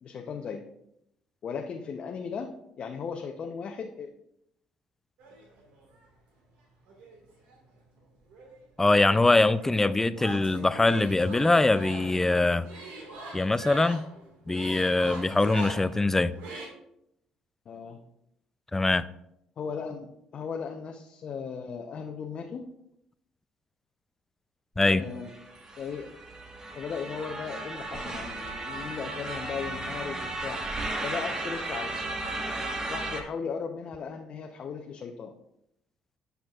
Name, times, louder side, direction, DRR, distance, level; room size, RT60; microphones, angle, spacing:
voice 1, 0.0-0.6 1.4-2.5 2.8-4.1 17.7-18.0 19.6-22.6 24.9-25.3 25.8-26.1 26.8-30.6 31.0-32.0 32.9-35.3, left 6 dB, 55° left, 2 dB, 0.7 m, -36 dB
sound 1, 5.2-6.0 6.9-8.0 8.3-16.7, right 2 dB, 80° right, 1.8 m, -42 dB
voice 2, 8.8-12.7 13.3-14.1 14.5-16.3 18.7-19.0 24.8-25.1, left 2 dB, 15° left, 15 dB, 0.4 m, -23 dB
sound 2, 25.0-33.2, right 2 dB, 30° right, 1.3 m, -35 dB
10.5 x 5.8 x 2.4 m, 0.77 s
supercardioid pair, 65°, 2 cm